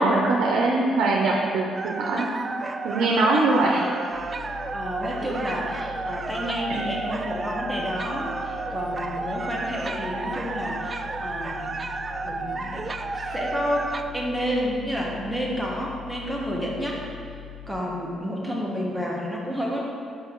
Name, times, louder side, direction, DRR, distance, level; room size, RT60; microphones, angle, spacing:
voice 1, 0.0-2.3 2.8-3.8 6.7-6.9, right 2 dB, 85° right, -2 dB, 0.6 m, -22 dB
sound 1, 1.7-14.0, right 3 dB, 35° right, 0.3 m, -32 dB
sound 2, 4.1-17.7, left 11 dB, 65° left, 1.4 m, -42 dB
voice 2, 4.7-11.8 12.2-12.8 13.1-17.0 17.7-19.8, equal, ahead, -3 dB, 1.2 m, -30 dB
5.2 x 5.1 x 3.8 m, 2.3 s
cardioid pair, 90°, 0 cm